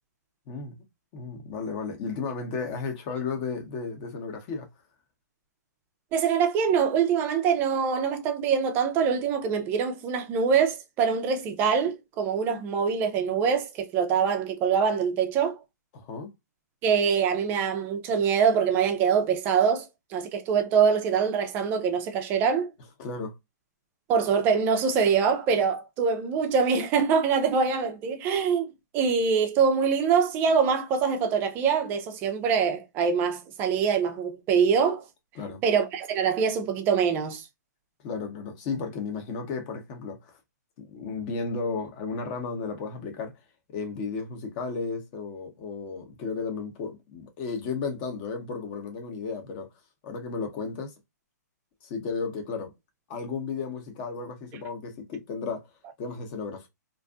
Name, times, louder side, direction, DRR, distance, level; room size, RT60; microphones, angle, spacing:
voice 1, 1.1-4.7 15.9-16.3 23.0-23.4 35.3-35.6 38.0-40.4 40.8-43.3 43.7-49.7 50.0-50.9 51.8-52.7 53.1-55.7 56.0-56.7, left 4 dB, 30° left, 0.8 m, -34 dB
voice 2, 6.1-15.6 16.8-19.8 20.1-22.7 24.1-35.0 35.6-37.4, right 6 dB, 20° right, 0.4 m, -24 dB
2.6 x 2.4 x 2.3 m
hypercardioid pair, 150°, 10 cm